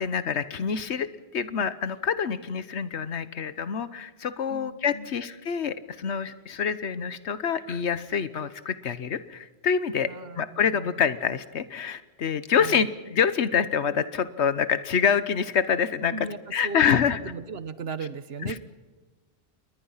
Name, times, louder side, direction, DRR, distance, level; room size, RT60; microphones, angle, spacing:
voice 1, 0.0-10.1 10.4-16.1 16.5-17.2 18.4-18.6, left 7 dB, 85° left, 14 dB, 1.3 m, -26 dB
voice 2, 4.5-5.2 10.1-11.1 12.6-12.9 16.1-18.6, right 4 dB, 65° right, 14 dB, 1.3 m, -37 dB
28.0 x 21.0 x 5.7 m, 1.3 s
omnidirectional pair, 1.1 m